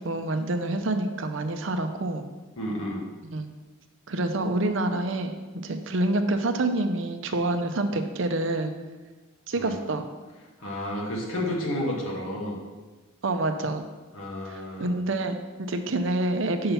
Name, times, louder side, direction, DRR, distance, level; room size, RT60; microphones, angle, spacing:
voice 1, 0.0-2.2 3.3-3.5 4.1-5.3 5.6-8.7 9.5-10.1 13.2-13.8 14.5-16.7, right 2 dB, 65° right, 7 dB, 0.6 m, -27 dB
voice 2, 2.6-3.0 9.6-9.7 10.6-12.6 14.1-14.9, left 1 dB, 70° left, -1 dB, 1.6 m, -31 dB
5.6 x 5.5 x 5.7 m, 1.3 s
head